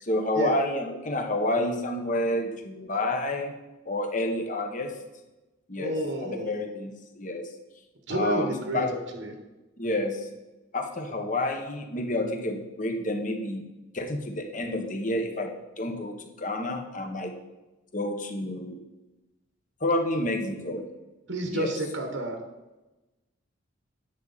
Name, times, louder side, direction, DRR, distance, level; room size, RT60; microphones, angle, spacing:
voice 1, 0.0-3.5 3.8-4.9 5.7-7.5 8.1-8.9 9.8-10.3 10.7-13.6 13.9-15.5 15.8-17.3 17.9-18.8 19.8-20.9 21.5-21.7, left 1 dB, 40° left, 4 dB, 1.2 m, -29 dB
voice 2, 5.8-6.6 8.1-9.3 21.3-22.4, right 2 dB, 65° right, 4 dB, 1.2 m, -30 dB
10.5 x 7.4 x 4.1 m, 1.1 s
head